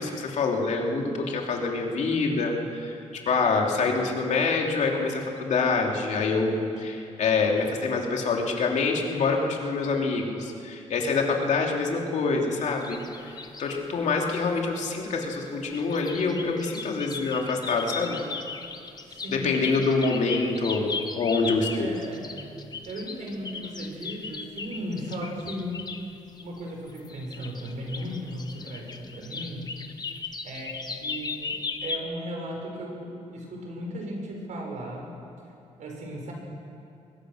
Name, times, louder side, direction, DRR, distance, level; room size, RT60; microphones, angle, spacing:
voice 1, 0.0-3.0 3.3-18.2 19.3-21.9, left 4 dB, 70° left, 1 dB, 2.9 m, -26 dB
sound 1, 12.6-13.8 15.1-32.0, left 4 dB, 30° left, 1.3 m, -37 dB
voice 2, 19.0-19.6 21.8-22.3 22.9-25.8 26.4-29.7 30.4-35.1 35.8-36.3, equal, 75° right, 0 dB, 5.7 m, -36 dB
22.5 x 21.0 x 6.4 m, 2.6 s
cardioid pair, 120°, 13 cm